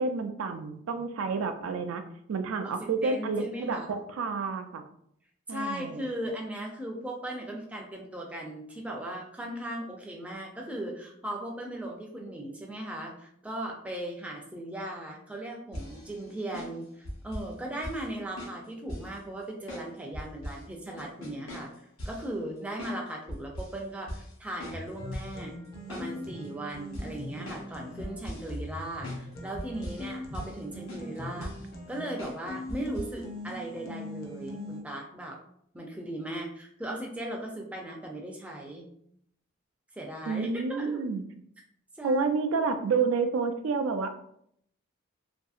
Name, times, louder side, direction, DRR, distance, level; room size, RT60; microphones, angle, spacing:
voice 1, 0.0-2.0 2.3-4.8 5.5-6.0 40.3-41.2 42.0-44.2, right 4 dB, 90° right, 8 dB, 0.3 m, -29 dB
voice 2, 2.6-3.9 5.5-21.7 22.1-25.6 25.9-31.5 31.9-35.4 35.7-38.9 39.9-41.1 42.0-42.2, right 1 dB, 5° right, 0 dB, 0.3 m, -38 dB
sound 1, 15.7-17.5 17.8-18.1 18.4-19.2 19.7-20.6 21.0-22.3 22.8-23.0 23.3-23.8 24.1-24.3 24.6-25.4 25.7-26.4 26.9-27.7 28.0-28.6 29.0-29.2 29.6-30.1 30.3-30.6 30.9-31.7 32.2-32.4 32.7-33.1 33.5-33.6, equal, 85° left, 0.9 m, -40 dB
sound 2, 24.7-34.8, left 1 dB, 45° left, 0.6 m, -41 dB
2.7 x 2.6 x 2.4 m, 0.70 s
head